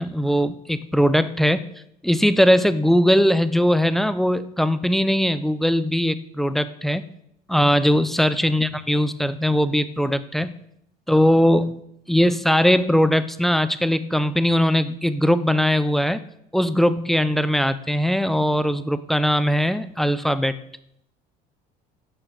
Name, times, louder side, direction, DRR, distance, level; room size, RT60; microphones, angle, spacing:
voice 1, 0.0-1.7 2.0-7.1 7.5-10.5 11.1-11.8 12.1-16.2 16.5-20.5, equal, ahead, 13 dB, 0.4 m, -20 dB
10.5 x 7.1 x 7.0 m, 0.76 s
cardioid pair, 165°, 18 cm